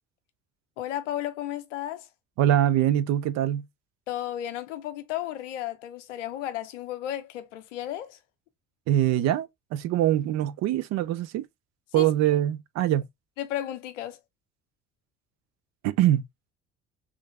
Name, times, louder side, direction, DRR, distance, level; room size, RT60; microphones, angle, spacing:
voice 1, 0.8-2.1 4.1-8.2 11.9-12.1 13.4-14.2, left 12 dB, 75° left, 0.6 m, -33 dB
voice 2, 2.4-3.6 8.9-11.4 11.9-13.0 15.8-16.2, right 12 dB, 50° right, 0.5 m, -23 dB
3.1 x 2.4 x 3.1 m
figure-of-eight pair, 55°, 37 cm